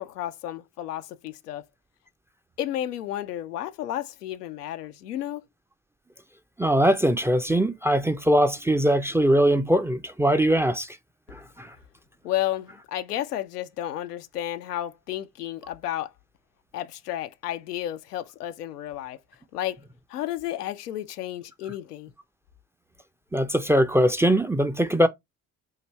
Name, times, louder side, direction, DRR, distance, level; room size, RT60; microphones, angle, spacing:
voice 1, 0.0-1.6 2.6-5.4 12.2-16.1 16.7-19.2 19.5-19.8 20.1-22.1, left 12 dB, 85° left, 0.5 m, -32 dB
voice 2, 6.6-10.9 11.3-11.7 23.3-25.1, equal, 5° right, 0.4 m, -21 dB
5.9 x 2.5 x 3.0 m
figure-of-eight pair, 50°, 45 cm